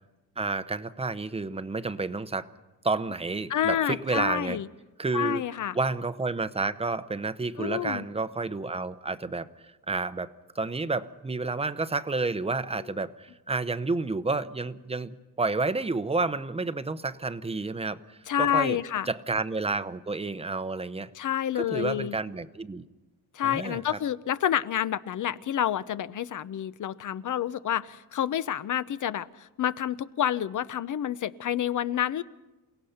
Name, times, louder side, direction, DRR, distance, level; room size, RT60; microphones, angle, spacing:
voice 1, 0.4-2.5 2.8-4.6 5.0-5.4 5.7-9.5 9.9-18.0 18.4-18.8 19.1-21.1 21.6-22.9 23.4-24.0, right 3 dB, 15° right, 13 dB, 0.8 m, -30 dB
voice 2, 3.5-4.7 5.1-5.8 7.6-8.0 18.3-19.1 21.1-22.2 23.3-32.2, left 10 dB, 55° left, 15 dB, 0.8 m, -28 dB
29.0 x 18.0 x 5.8 m, 1.1 s
cardioid pair, 120°, 37 cm